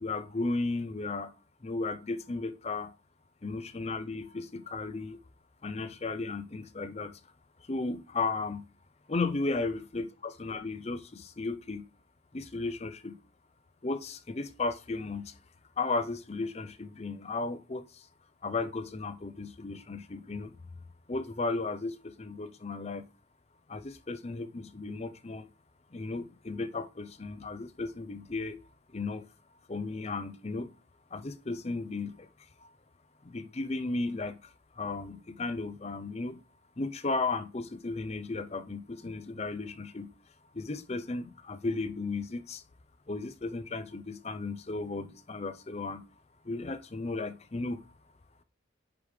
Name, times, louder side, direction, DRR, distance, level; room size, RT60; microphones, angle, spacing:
voice 1, 0.0-1.3 1.6-2.9 3.4-5.2 5.6-7.1 7.7-8.6 9.1-11.8 12.3-13.2 13.8-15.3 15.8-17.8 18.4-20.5 21.1-23.0 23.7-25.5 25.9-28.6 28.9-29.2 29.7-30.7 31.1-32.1 33.3-34.4 34.8-36.4 36.8-40.1 40.6-42.6 43.1-46.0 46.5-47.8, left 3 dB, 35° left, 0.6 m, -35 dB
9.8 x 5.3 x 3.2 m
head